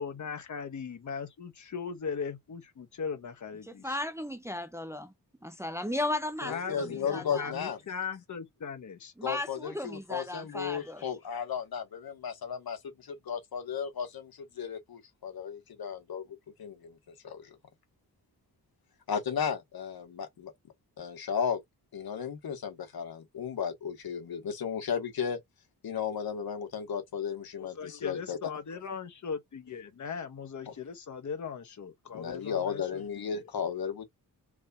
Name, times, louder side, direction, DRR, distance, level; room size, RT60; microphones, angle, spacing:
voice 1, 0.0-4.0 6.4-9.1 27.6-33.5, left 6 dB, 55° left, 1.1 m, -39 dB
voice 2, 3.8-5.1 5.4-7.5 9.2-11.0, left 1 dB, 10° right, 0.5 m, -35 dB
voice 3, 6.4-7.8 9.2-16.2 16.6-17.0 17.2-17.6 19.1-20.5 21.0-21.6 21.9-25.4 25.8-28.4 32.1-34.0, left 7 dB, 75° left, 1.6 m, -34 dB
4.8 x 3.6 x 2.9 m
wide cardioid pair, 130°, 36 cm